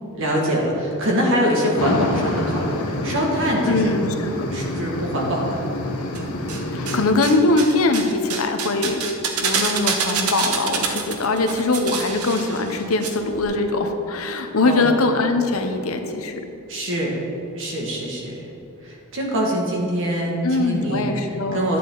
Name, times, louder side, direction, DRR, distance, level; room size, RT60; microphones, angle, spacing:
voice 1, 0.1-4.0 4.5-5.6 14.6-14.9 16.7-17.1 17.6-18.3 18.8-21.1 21.5-21.8, equal, 60° right, -2 dB, 2.0 m, -24 dB
sound 1, 1.8-7.1, left 1 dB, 90° left, 1.1 m, -27 dB
voice 2, 3.7-4.5 6.7-9.0 9.4-16.4 20.4-21.7, left 2 dB, 70° left, 6 dB, 0.9 m, -22 dB
sound 2, 6.1-7.0 7.2-13.1 13.3-13.4, right 5 dB, 85° right, 1.0 m, -26 dB
11.0 x 8.5 x 3.9 m, 2.8 s
head